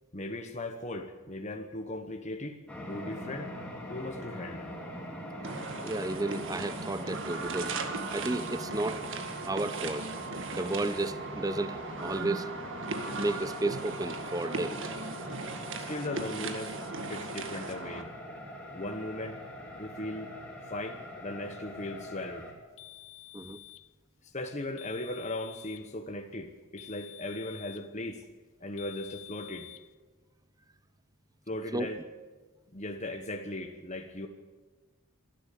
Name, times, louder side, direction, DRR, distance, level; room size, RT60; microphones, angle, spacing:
voice 1, 0.1-2.6 2.9-3.5 3.9-4.7 15.8-16.8 17.1-18.1 18.7-19.4 19.8-20.3 20.7-22.5 24.2-28.2 28.6-29.7 31.5-32.0 32.7-34.3, left 1 dB, 30° left, 1.2 m, -38 dB
sound 1, 2.7-22.5, left 1 dB, 5° left, 3.2 m, -43 dB
sound 2, 5.4-18.0, right 3 dB, 55° right, 1.9 m, -38 dB
voice 2, 5.8-7.8 8.1-9.0 9.5-10.1 10.5-12.5 13.2-14.8 23.3-23.6 31.7-31.9, right 2 dB, 15° right, 0.7 m, -32 dB
sound 3, 22.8-23.9 24.8-25.9 26.8-27.9 28.8-29.9, left 19 dB, 60° left, 0.7 m, -49 dB
26.5 x 12.0 x 8.5 m
head